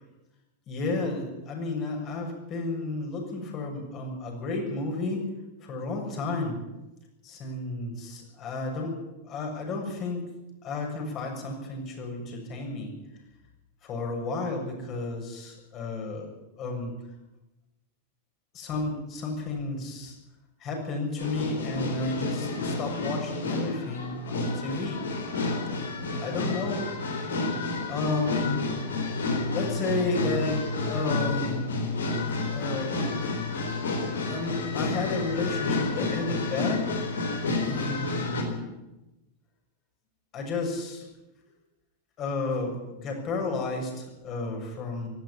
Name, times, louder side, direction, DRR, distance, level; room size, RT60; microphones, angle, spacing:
voice 1, 0.7-5.2 5.6-6.6 7.2-9.0 9.2-10.2 10.6-12.9 13.8-16.3 16.6-16.9 18.5-20.1 20.6-25.0 26.2-26.8 27.9-28.6 29.5-31.9 32.5-32.9 34.2-36.9 37.6-38.7 40.3-41.1 42.2-45.1, left 3 dB, 35° left, 1 dB, 7.0 m, -32 dB
sound 1, 21.2-38.4, left 3 dB, 65° left, 4.3 m, -30 dB
18.5 x 14.5 x 9.9 m, 1.0 s
figure-of-eight pair, 90°, 0 cm